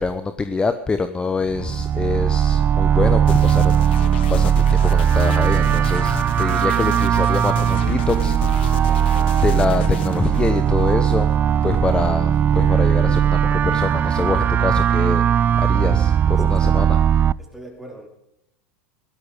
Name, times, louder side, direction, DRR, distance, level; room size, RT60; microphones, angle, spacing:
voice 1, 0.0-3.7 4.3-8.4 9.4-11.3 11.6-15.2 15.6-17.0, left 4 dB, 15° left, 10 dB, 1.0 m, -24 dB
sound 1, 1.4-17.3, right 9 dB, 30° right, 0.5 m, -18 dB
sound 2, 3.3-11.3, left 13 dB, 70° left, 0.9 m, -35 dB
voice 2, 8.8-9.3 16.3-16.6 17.4-18.1, right 1 dB, 5° right, 1 dB, 4.6 m, -41 dB
16.5 x 13.0 x 5.1 m, 0.81 s
hypercardioid pair, 95°, 6 cm